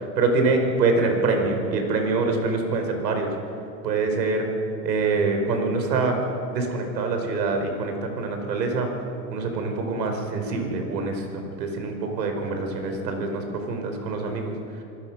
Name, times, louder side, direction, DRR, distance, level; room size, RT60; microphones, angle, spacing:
voice 1, 0.2-3.3 3.8-4.6 4.8-8.9 9.3-14.8, right 3 dB, 80° right, 4 dB, 5.1 m, -25 dB
26.5 x 20.0 x 6.2 m, 2.8 s
supercardioid pair, 155°, 49 cm